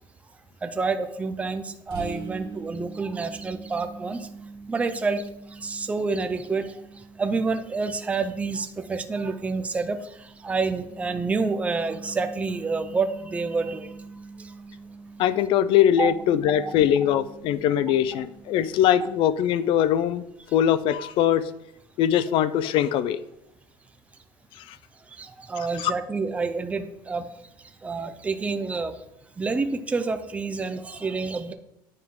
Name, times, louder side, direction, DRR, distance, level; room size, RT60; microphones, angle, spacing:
voice 1, 0.6-4.3 4.7-5.2 5.6-6.8 7.2-10.0 10.4-13.9 16.0-16.1 16.4-16.7 25.2-27.2 27.8-28.9 29.4-31.5, right 4 dB, 10° right, 8 dB, 0.5 m, -28 dB
sound 1, 1.9-19.4, right 4 dB, 45° right, 2.8 m, -44 dB
voice 2, 15.2-21.5 22.0-23.2 25.8-25.9, left 10 dB, 55° left, 15 dB, 0.4 m, -22 dB
9.3 x 4.5 x 3.7 m, 0.83 s
cardioid pair, 145°, 11 cm